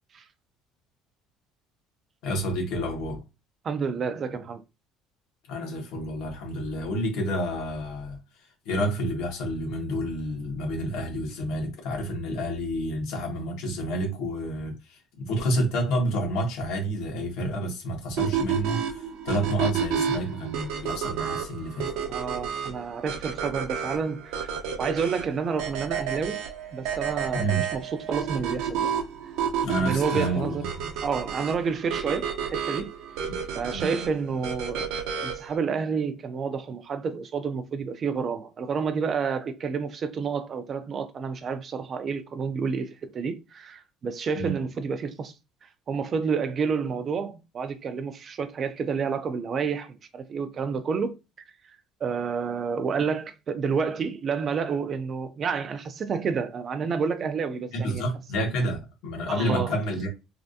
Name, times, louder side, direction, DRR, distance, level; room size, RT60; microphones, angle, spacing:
voice 1, 2.2-3.2 5.5-8.2 8.6-21.9 27.3-27.6 29.6-30.9 33.7-33.9 44.3-44.6 57.7-60.1, right 1 dB, 70° left, 1.3 m, -29 dB
voice 2, 3.6-4.6 22.1-26.4 26.7-28.9 29.8-30.7 31.0-32.9 33.5-45.3 45.6-51.2 52.0-58.0 59.3-59.8, right 5 dB, 30° right, 0.3 m, -29 dB
sound 1, 18.2-35.6, right 7 dB, 70° right, 0.6 m, -31 dB
3.3 x 2.5 x 2.5 m
cardioid pair, 165°, 0 cm